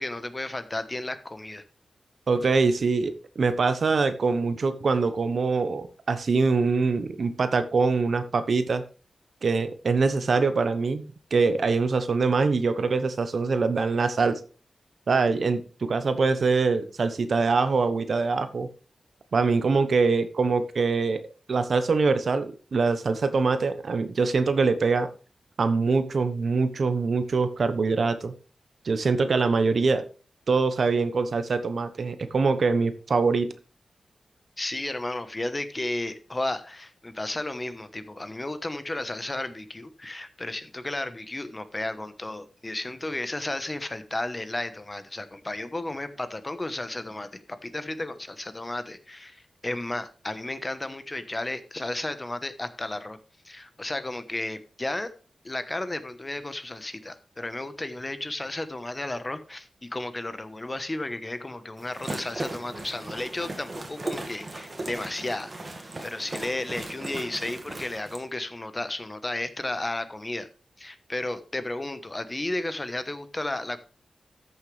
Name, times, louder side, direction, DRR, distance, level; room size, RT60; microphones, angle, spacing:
voice 1, 0.0-1.6 34.6-53.2 53.4-55.1 55.4-70.5 70.8-73.8, left 2 dB, 25° left, 1.1 m, -33 dB
voice 2, 2.3-8.8 9.4-11.0 11.3-14.4 15.1-18.7 19.3-21.2 21.5-25.1 25.6-28.3 28.8-30.0 30.5-33.5, right 4 dB, 65° right, 1.0 m, -24 dB
sound 1, 61.8-68.2, right 2 dB, 35° right, 2.0 m, -37 dB
13.5 x 6.9 x 3.3 m
wide cardioid pair, 95°, 0 cm